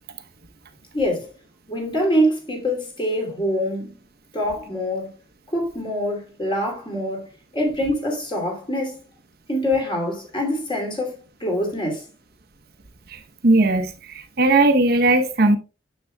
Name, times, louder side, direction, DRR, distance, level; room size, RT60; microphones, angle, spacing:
voice 1, 0.9-1.3 1.7-3.9 4.3-5.1 5.5-7.3 7.5-9.0 9.5-12.1, equal, 25° left, 2.7 m, -24 dB
voice 2, 13.1-15.6, right 2 dB, 60° right, 0.9 m, -18 dB
9.6 x 6.9 x 2.2 m
head